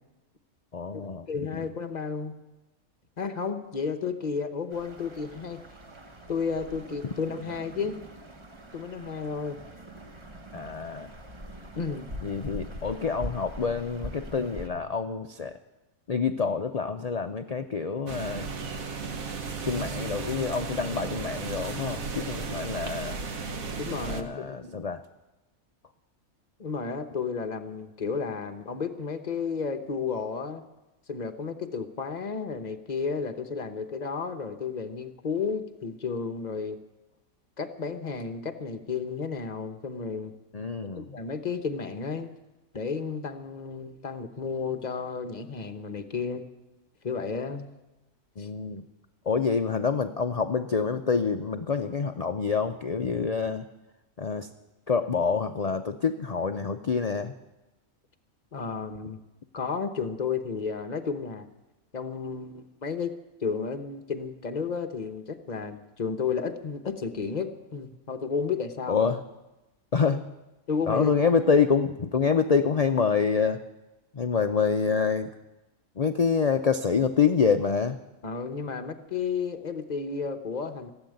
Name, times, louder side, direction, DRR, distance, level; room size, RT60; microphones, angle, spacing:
voice 1, 0.7-1.3 10.5-11.1 12.2-15.5 16.1-18.5 19.6-23.2 24.0-25.0 40.5-41.2 48.4-48.8 49.3-53.6 54.2-54.5 54.9-57.3 68.9-69.2 69.9-70.2 70.9-73.6 74.1-75.3 76.0-78.0, left 5 dB, 70° left, 7 dB, 0.3 m, -26 dB
voice 2, 1.3-2.4 3.2-5.6 6.3-8.0 8.7-9.6 11.8-12.1 23.8-24.8 26.6-30.6 31.1-36.8 37.6-40.3 41.1-42.3 42.7-46.4 47.0-47.7 48.4-48.5 58.5-59.2 59.5-61.5 61.9-63.1 63.4-69.1 70.7-71.1 78.2-80.9, left 5 dB, 35° left, 7 dB, 1.0 m, -32 dB
sound 1, 4.7-14.7, equal, 25° right, 1.0 m, -43 dB
sound 2, 18.1-24.2, right 4 dB, 75° right, 1.4 m, -35 dB
16.0 x 8.1 x 9.3 m, 1.0 s
omnidirectional pair, 1.5 m